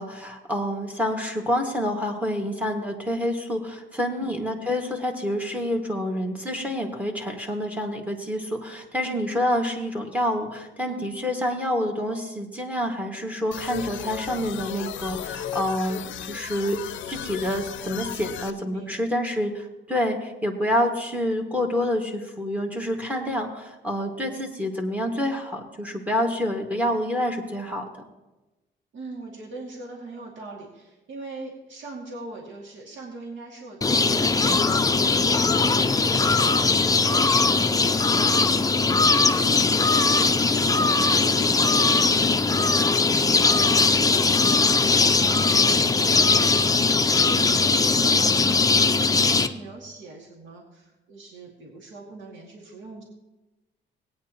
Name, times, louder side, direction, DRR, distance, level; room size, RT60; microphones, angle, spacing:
voice 1, 0.0-16.8 17.1-27.8, left 1 dB, 5° right, 2 dB, 1.9 m, -27 dB
sound 1, 13.5-18.5, left 10 dB, 70° left, 0.5 m, -35 dB
voice 2, 18.4-18.9 28.9-53.0, right 3 dB, 70° right, -2 dB, 2.4 m, -42 dB
sound 2, 33.8-49.5, left 4 dB, 15° left, 0.6 m, -20 dB
17.5 x 9.2 x 3.0 m, 1.1 s
cardioid pair, 90°, 20 cm